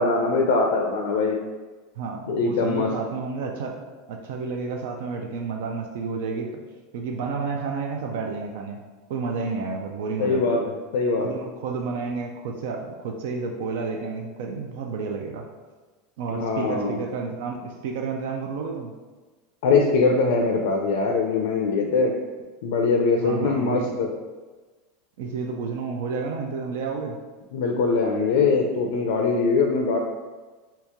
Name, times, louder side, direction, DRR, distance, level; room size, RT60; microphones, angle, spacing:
voice 1, 0.0-1.4 2.3-2.9 10.2-10.6 10.9-11.3 16.3-17.0 19.6-22.1 22.6-24.1 27.5-30.0, left 4 dB, 75° left, 1 dB, 0.4 m, -22 dB
voice 2, 2.0-6.6 6.9-8.8 9.1-10.6 11.2-15.4 16.2-18.9 23.2-24.1 25.2-27.2, right 4 dB, 70° right, 2 dB, 0.4 m, -31 dB
2.9 x 2.8 x 3.4 m, 1.3 s
supercardioid pair, 150°, 0 cm